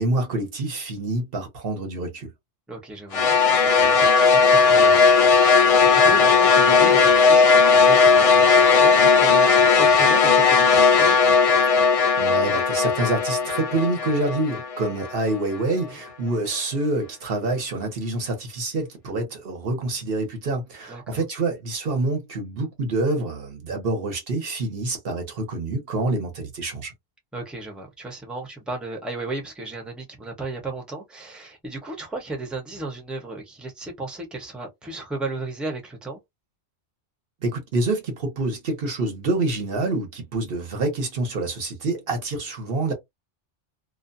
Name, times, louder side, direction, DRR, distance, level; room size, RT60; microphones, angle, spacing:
voice 1, 0.0-2.3 12.2-26.9 37.4-42.9, right 2 dB, 55° right, 1.0 m, -27 dB
voice 2, 2.7-11.2 20.9-21.2 27.3-36.2, right 2 dB, ahead, 0.6 m, -35 dB
sound 1, 3.1-15.4, left 5 dB, 60° left, 0.3 m, -17 dB
2.5 x 2.2 x 2.6 m
omnidirectional pair, 1.2 m